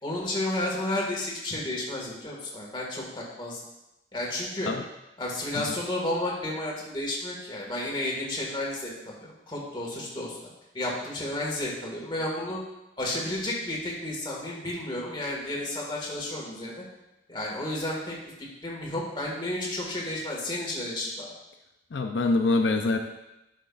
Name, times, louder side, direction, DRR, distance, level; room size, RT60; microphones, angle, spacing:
voice 1, 0.0-3.6 4.1-4.7 5.2-10.4 10.7-12.6 13.0-16.8 17.3-18.2 18.6-21.3, left 1 dB, 25° left, -3 dB, 1.9 m, -32 dB
voice 2, 21.9-23.0, left 3 dB, 90° left, 4 dB, 0.6 m, -25 dB
11.0 x 6.3 x 2.5 m, 0.93 s
head